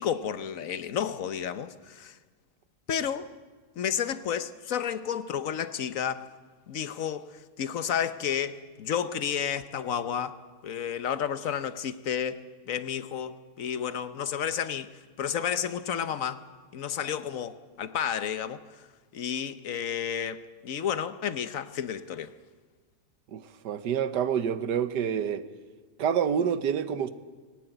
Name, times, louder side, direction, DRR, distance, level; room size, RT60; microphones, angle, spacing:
voice 1, 0.0-2.2 2.9-3.3 3.8-6.3 6.7-7.3 7.6-10.4 10.6-12.4 12.7-14.9 15.2-16.4 16.7-18.6 19.1-22.3, left 8 dB, 55° left, 1.2 m, -31 dB
voice 2, 23.3-25.4 26.0-27.1, right 8 dB, 80° right, 1.6 m, -27 dB
19.0 x 18.0 x 9.0 m
omnidirectional pair, 1.8 m